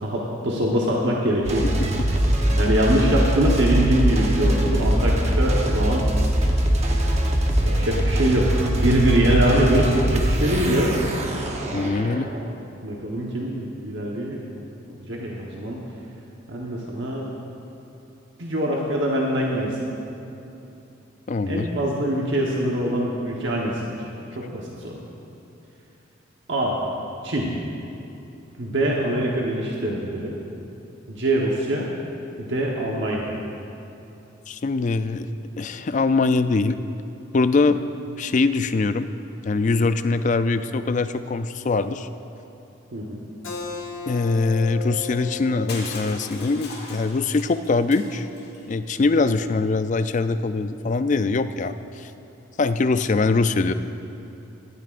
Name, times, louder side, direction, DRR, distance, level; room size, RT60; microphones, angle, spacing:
voice 1, 0.0-1.6 2.5-6.0 7.6-10.9 12.8-14.4 14.9-15.8 16.5-17.2 18.4-19.9 21.5-24.1 24.4-25.0 26.5-26.8 27.2-27.5 28.6-30.3 31.1-31.9 32.4-33.3 42.9-43.2, right 1 dB, 60° right, -3 dB, 1.1 m, -23 dB
sound 1, 1.4-12.5, right 1 dB, 35° right, 1.0 m, -22 dB
voice 2, 11.7-12.3 21.3-21.7 34.5-35.3 35.6-36.8 37.3-37.8 38.1-39.1 39.4-42.1 44.1-48.3 48.7-52.1 52.6-53.7, left 3 dB, 40° left, 11 dB, 0.4 m, -22 dB
Keyboard (musical), 43.4-48.6, left 4 dB, 90° left, 1.7 m, -37 dB
Crushing, 45.7-48.6, left 3 dB, 55° left, 2.0 m, -40 dB
18.0 x 12.5 x 2.5 m, 2.9 s
head